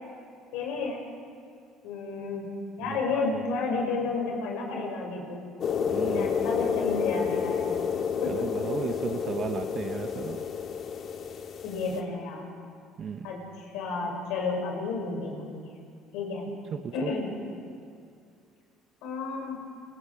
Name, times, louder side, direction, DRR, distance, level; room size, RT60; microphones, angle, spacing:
voice 1, 0.5-1.0 1.8-2.5 2.8-5.4 6.0-7.8 8.2-8.4 11.6-12.4 13.2-15.8 16.1-16.5 16.9-17.3 19.0-19.6, left 4 dB, 80° left, 0 dB, 6.7 m, -31 dB
voice 2, 2.8-3.4 5.9-6.3 8.3-10.4 13.0-13.3 16.7-17.1, right 7 dB, 45° right, 7 dB, 1.1 m, -35 dB
sound 1, 5.6-12.0, left 6 dB, 55° left, 2.4 m, -30 dB
29.5 x 20.5 x 5.1 m, 2.3 s
supercardioid pair, 90°, 0 cm